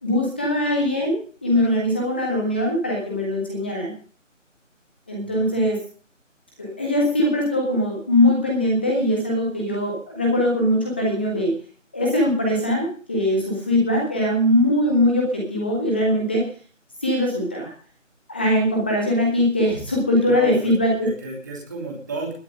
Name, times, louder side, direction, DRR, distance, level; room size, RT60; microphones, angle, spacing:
voice 1, 0.0-1.1 1.4-3.9 5.1-5.8 6.6-11.5 11.9-16.5 17.0-17.7 18.3-21.1, left 1 dB, 10° left, 0 dB, 1.6 m, -21 dB
voice 2, 5.2-5.6 18.5-18.7 20.2-22.3, right 3 dB, 15° right, -2 dB, 2.9 m, -34 dB
21.0 x 7.2 x 5.3 m, 0.43 s
figure-of-eight pair, 165°, 39 cm